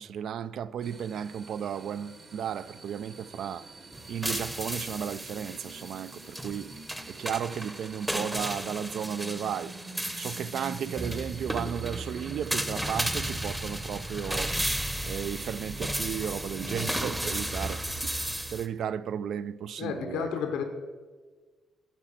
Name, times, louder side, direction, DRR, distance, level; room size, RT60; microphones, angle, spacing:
voice 1, 0.0-3.7 4.1-6.7 7.1-9.7 10.2-14.5 15.1-18.2 18.5-20.3, right 8 dB, 70° right, 0.3 m, -34 dB
sound 1, 0.8-15.9, right 3 dB, 45° right, 1.1 m, -47 dB
sound 2, 3.9-18.7, right 1 dB, 10° right, 0.7 m, -34 dB
voice 2, 19.8-20.6, left 7 dB, 85° left, 1.0 m, -31 dB
8.6 x 5.0 x 7.5 m
cardioid pair, 90°, 0 cm